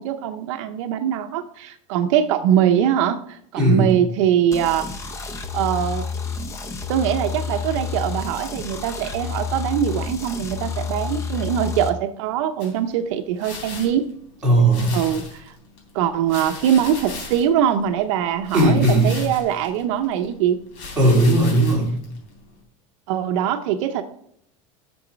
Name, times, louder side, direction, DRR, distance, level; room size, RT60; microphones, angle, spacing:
voice 1, 0.0-4.9 5.5-6.1 6.9-14.1 14.9-15.5 15.9-20.6 23.1-24.0, right 9 dB, 65° right, 7 dB, 0.6 m, -22 dB
voice 2, 3.6-3.9 14.4-15.0 18.5-19.1 21.0-21.9, right 1 dB, 5° right, -7 dB, 3.2 m, -16 dB
sound 1, 4.5-11.9, left 5 dB, 15° left, 0.6 m, -30 dB
sound 2, 12.6-22.6, left 3 dB, 60° left, 3.6 m, -39 dB
6.9 x 6.8 x 5.1 m, 0.69 s
supercardioid pair, 170°, 17 cm